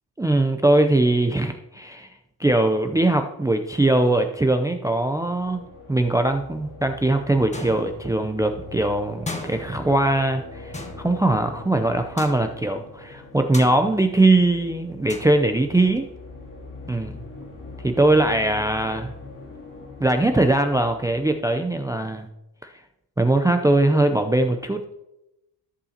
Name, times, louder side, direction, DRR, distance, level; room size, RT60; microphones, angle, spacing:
voice 1, 0.2-2.1 2.4-5.6 5.9-16.1 16.9-17.2 17.8-19.1 20.0-22.3 22.6-22.7 23.2-24.9, right 2 dB, 10° right, 6 dB, 0.5 m, -21 dB
sound 1, 4.8-21.8, left 2 dB, 50° left, 2.7 m, -42 dB
sound 2, 7.5-8.4 9.3-10.3 10.7-11.6 12.2-12.8 13.5-14.3 15.1-15.2, left 2 dB, 15° left, 1.2 m, -37 dB
13.5 x 5.4 x 2.8 m, 0.89 s
cardioid pair, 80°, 41 cm